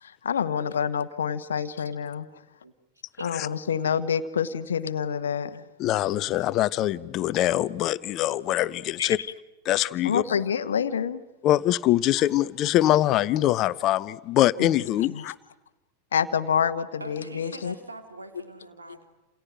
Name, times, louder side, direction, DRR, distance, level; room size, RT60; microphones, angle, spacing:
voice 1, 0.0-2.2 3.2-5.6 9.0-9.1 10.0-11.2 15.1-15.3 16.1-17.7, left 7 dB, 65° left, 1.1 m, -27 dB
voice 2, 5.8-9.2 9.6-10.2 11.4-15.3, left 14 dB, 35° left, 0.8 m, -23 dB
voice 3, 17.0-19.1, right 2 dB, 80° right, 3.5 m, -43 dB
29.0 x 28.0 x 6.2 m
figure-of-eight pair, 90°, 0 cm